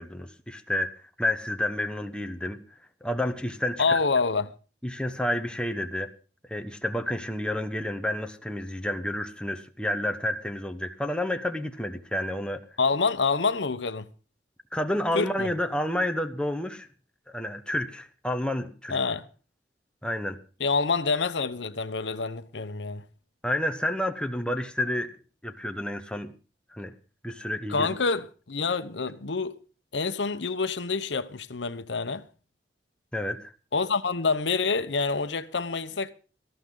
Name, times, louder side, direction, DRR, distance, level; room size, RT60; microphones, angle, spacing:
voice 1, 0.0-2.6 3.0-4.0 4.8-6.1 6.5-12.6 14.7-16.9 17.3-19.0 20.0-20.4 23.4-25.2 25.4-26.3 26.7-26.9 27.2-27.9 33.1-33.5, left 1 dB, 5° left, 1.0 m, -30 dB
voice 2, 3.8-4.5 12.8-14.1 15.1-15.5 18.9-19.3 20.6-23.0 27.7-29.5 29.9-32.2 33.7-36.1, left 4 dB, 85° left, 0.9 m, -27 dB
18.5 x 13.5 x 3.9 m
head